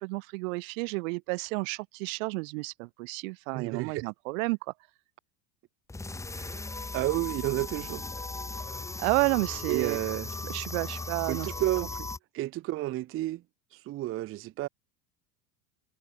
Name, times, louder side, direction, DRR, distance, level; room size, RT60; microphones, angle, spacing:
voice 1, 0.0-4.6 9.0-10.0 10.4-11.5, right 29 dB, 70° right, 0.8 m, -31 dB
voice 2, 3.5-4.1 6.3-6.7 6.9-8.1 9.7-10.3 11.3-11.9 12.3-13.4 13.7-14.7, right 16 dB, 30° right, 0.5 m, -31 dB
sound 1, 5.9-12.2, left 2 dB, 5° left, 1.1 m, -37 dB
supercardioid pair, 115°, 41 cm